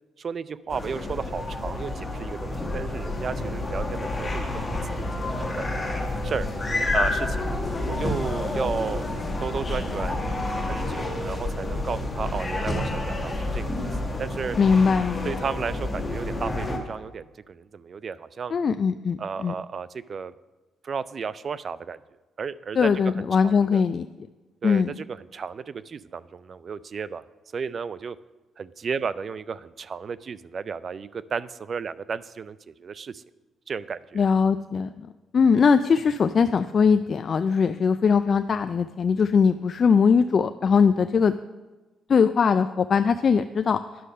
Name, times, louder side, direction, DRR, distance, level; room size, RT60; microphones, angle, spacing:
voice 1, 0.2-5.7 6.2-6.5 6.9-7.5 7.9-9.0 9.4-10.2 10.7-13.9 14.2-14.6 15.2-18.6 19.2-20.3 20.8-22.0 22.4-22.9 23.2-23.8 24.6-27.3 27.5-28.2 28.6-33.2 33.7-34.2, right 6 dB, 45° right, 17 dB, 0.3 m, -33 dB
sound 1, 0.7-16.8, left 2 dB, 15° left, 1.5 m, -29 dB
voice 2, 14.6-15.3 18.5-19.5 22.8-24.1 24.6-24.9 34.2-35.1 35.3-41.3 42.1-43.8, left 6 dB, 45° left, 9 dB, 0.3 m, -21 dB
10.0 x 6.4 x 5.5 m, 1.2 s
cardioid pair, 90°, 0 cm